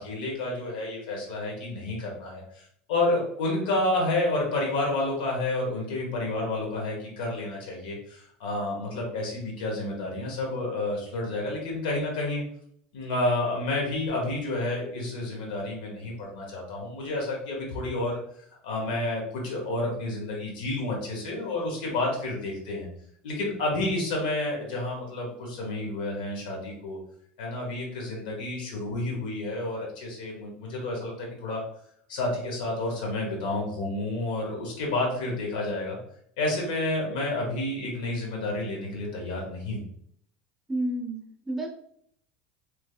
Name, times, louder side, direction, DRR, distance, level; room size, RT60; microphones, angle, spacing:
voice 1, 0.0-12.4 12.9-18.2 18.6-22.9 23.2-27.0 27.4-31.6 32.1-36.0 36.4-39.8, left 2 dB, 85° left, -1 dB, 1.2 m, -30 dB
voice 2, 40.7-41.7, right 1 dB, 5° right, 0 dB, 0.6 m, -30 dB
3.3 x 3.2 x 2.3 m, 0.66 s
supercardioid pair, 115°, 5 cm